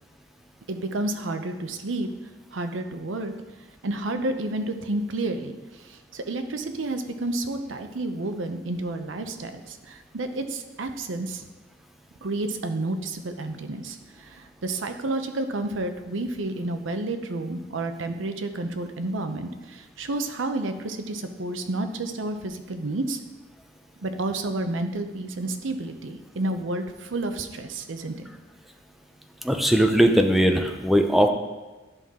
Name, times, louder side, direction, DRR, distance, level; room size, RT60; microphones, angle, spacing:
voice 1, 0.7-2.1 2.5-3.3 3.8-5.6 5.8-11.4 12.2-23.2 24.0-28.1, right 2 dB, 80° right, 7 dB, 0.7 m, -30 dB
voice 2, 29.4-31.3, equal, ahead, 5 dB, 0.5 m, -19 dB
11.0 x 5.6 x 3.7 m, 1.2 s
head